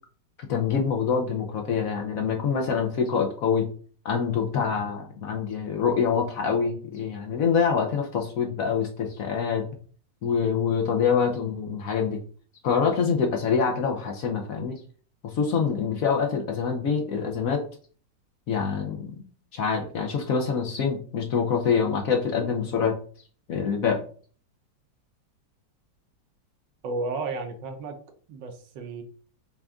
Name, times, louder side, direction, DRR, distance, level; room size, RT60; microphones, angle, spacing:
voice 1, 0.5-3.7 4.0-9.6 10.2-12.2 12.6-14.8 15.2-17.6 18.5-19.2 19.5-23.0 23.5-24.0, left 6 dB, 60° left, 2 dB, 1.0 m, -25 dB
voice 2, 26.8-28.0 28.3-29.0, right 3 dB, 85° right, 5 dB, 1.6 m, -32 dB
5.9 x 2.5 x 3.5 m, 0.43 s
omnidirectional pair, 1.9 m